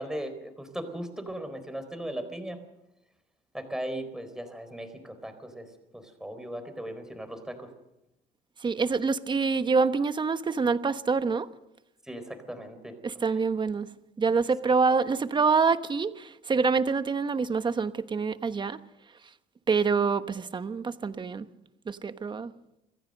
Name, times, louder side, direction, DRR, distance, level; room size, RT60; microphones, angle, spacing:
voice 1, 0.0-2.6 3.5-5.7 5.9-7.7 12.0-13.0, right 1 dB, 5° right, 7 dB, 4.1 m, -37 dB
voice 2, 8.6-11.5 13.0-13.9 14.2-18.8 19.7-21.5 21.9-22.5, right 5 dB, 30° right, 11 dB, 1.1 m, -26 dB
25.0 x 16.0 x 6.6 m, 0.90 s
cardioid pair, 110°, 17 cm